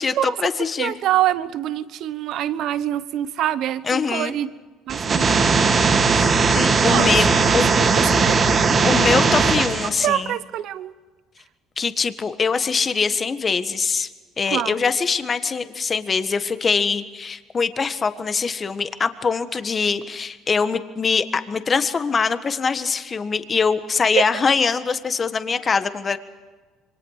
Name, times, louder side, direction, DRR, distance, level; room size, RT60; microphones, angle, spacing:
voice 1, 0.0-1.0 3.8-4.3 6.1-7.7 8.8-10.4 11.8-14.1 14.4-26.2, left 5 dB, 30° left, 11 dB, 1.4 m, -23 dB
voice 2, 0.8-4.5 4.9-5.5 6.9-7.1 7.4-8.4 9.4-9.5 10.0-10.9 14.5-14.9 24.1-24.2, right 12 dB, 65° right, 14 dB, 1.1 m, -25 dB
sound 1, 4.9-9.9, right 4 dB, 35° right, 2.9 m, -18 dB
27.5 x 24.0 x 4.9 m, 1.3 s
cardioid pair, 110°, 0 cm